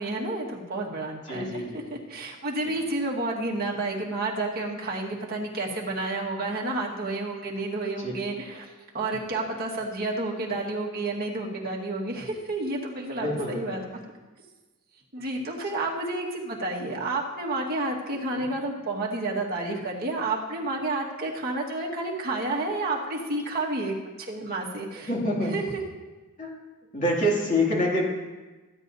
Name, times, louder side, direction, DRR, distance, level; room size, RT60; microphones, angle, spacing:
voice 1, 0.0-1.6 1.9-8.7 8.9-13.8 15.1-25.1 25.5-25.6, right 2 dB, 45° right, -3 dB, 1.6 m, -30 dB
voice 2, 1.3-1.8 2.6-2.7 8.0-8.1 13.2-13.8 18.3-18.5 25.1-25.5 26.4-26.6 26.9-28.0, left 1 dB, 35° left, -3 dB, 2.4 m, -26 dB
15.0 x 9.2 x 2.7 m, 1.2 s
head